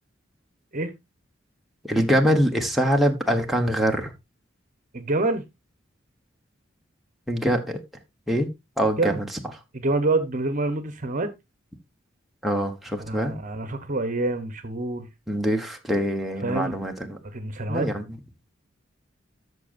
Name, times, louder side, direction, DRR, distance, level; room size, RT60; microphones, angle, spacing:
voice 1, 1.8-4.1 7.3-7.8 8.3-8.5 8.8-9.3 12.4-13.4 15.3-17.2 17.7-18.0, equal, ahead, 1.1 m, -24 dB
voice 2, 4.9-5.4 9.0-9.2 9.7-11.3 13.0-15.1 16.4-16.8 17.2-17.9, right 2 dB, 40° right, 1.1 m, -26 dB
14.0 x 6.3 x 2.5 m
head